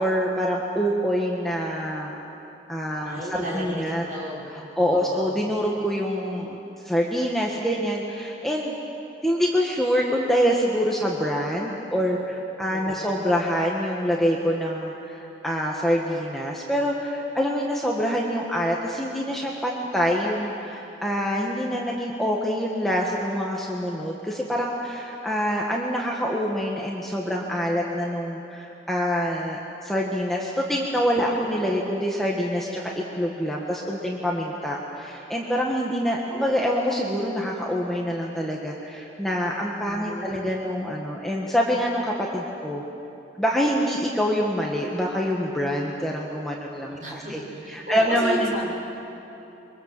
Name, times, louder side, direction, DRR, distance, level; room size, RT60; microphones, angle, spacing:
voice 1, 0.0-2.2 2.7-4.0 4.5-6.6 6.8-8.8 9.2-42.8 43.4-48.5, equal, ahead, -3 dB, 1.6 m, -26 dB
voice 2, 3.1-4.5 4.9-5.3 12.7-13.1 31.3-31.6 36.2-36.4 39.9-40.5 47.0-48.7, equal, 45° right, -4 dB, 7.3 m, -34 dB
26.5 x 24.0 x 7.5 m, 2.9 s
head